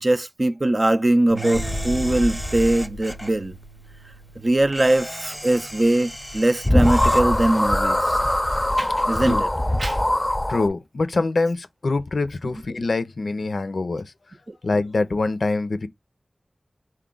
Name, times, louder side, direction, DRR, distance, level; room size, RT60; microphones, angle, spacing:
voice 1, 0.0-3.6 4.4-8.2 8.8-9.5 9.8-10.0 14.5-14.6, right 1 dB, 45° right, 0.4 m, -21 dB
Bass guitar, 1.3-7.5, right 5 dB, 90° right, 0.8 m, -42 dB
Camera, 1.4-3.3 4.7-7.3, equal, ahead, 0.9 m, -36 dB
sound 1, 1.5-3.1 6.3-6.4 6.6-10.7, left 1 dB, 20° left, 0.5 m, -22 dB
voice 2, 10.5-14.1 14.6-15.9, left 3 dB, 80° left, 0.5 m, -24 dB
4.4 x 2.3 x 3.7 m
wide cardioid pair, 65°, 0 cm